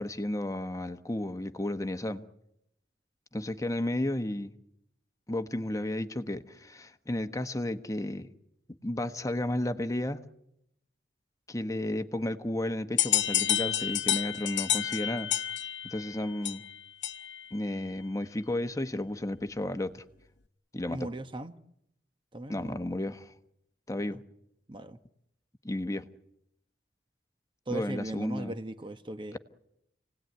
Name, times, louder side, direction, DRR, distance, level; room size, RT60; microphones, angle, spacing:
voice 1, 0.0-2.2 3.3-4.5 5.3-8.3 8.8-10.2 11.5-15.3 15.8-16.6 17.5-20.0 20.7-21.1 22.5-23.3 23.9-24.2 25.6-26.1 27.7-28.6, left 1 dB, 20° left, 1.1 m, -33 dB
sound 1, 13.0-17.5, left 12 dB, 80° left, 1.1 m, -30 dB
voice 2, 20.9-21.5 22.3-22.7 24.7-25.0 27.7-29.4, right 2 dB, 30° right, 1.0 m, -37 dB
28.5 x 18.5 x 9.3 m
head